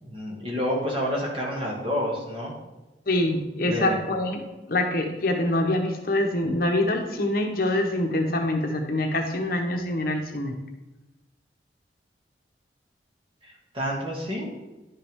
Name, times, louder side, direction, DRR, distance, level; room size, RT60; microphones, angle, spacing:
voice 1, 0.0-2.5 3.6-4.0 13.4-14.5, equal, 30° right, -3 dB, 2.0 m, -29 dB
voice 2, 3.1-4.4 4.7-10.5, left 1 dB, 55° left, 3 dB, 0.9 m, -25 dB
10.5 x 5.7 x 3.6 m, 1.1 s
head